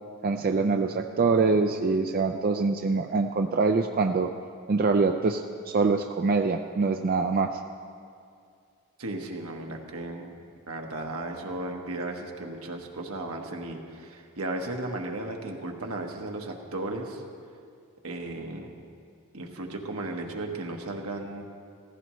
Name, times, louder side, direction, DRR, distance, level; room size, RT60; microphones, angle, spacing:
voice 1, 0.2-4.3 4.7-7.6, right 4 dB, 40° right, 5 dB, 0.4 m, -24 dB
voice 2, 9.0-10.3 10.7-17.2 18.0-18.7 19.3-21.5, right 2 dB, 75° right, 2 dB, 1.3 m, -35 dB
16.0 x 15.0 x 3.1 m, 2.3 s
head